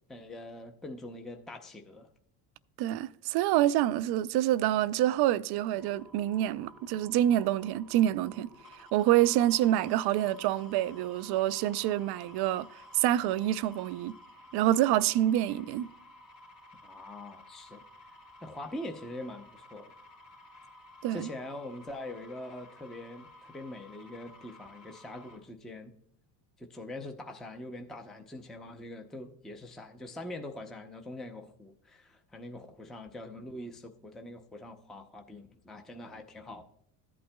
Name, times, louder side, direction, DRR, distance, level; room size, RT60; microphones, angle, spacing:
voice 1, 0.1-2.1 16.8-17.8 18.4-19.9 21.1-25.9 26.6-36.6, left 1 dB, ahead, 0.6 m, -43 dB
voice 2, 2.8-12.7 12.9-14.1 14.5-15.9 21.0-21.3, right 13 dB, 55° right, 0.5 m, -27 dB
sound 1, 5.8-25.4, left 1 dB, 85° left, 2.6 m, -54 dB
14.5 x 8.5 x 2.2 m
supercardioid pair, 100°, 48 cm